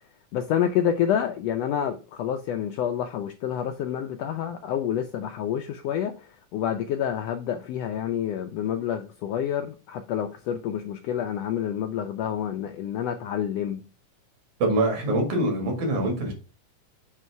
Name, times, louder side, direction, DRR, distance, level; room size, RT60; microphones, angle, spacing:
voice 1, 0.3-13.8, left 9 dB, 80° left, 1.4 m, -28 dB
voice 2, 14.6-16.3, right 1 dB, 85° right, 3.4 m, -24 dB
6.7 x 3.0 x 4.6 m
omnidirectional pair, 3.4 m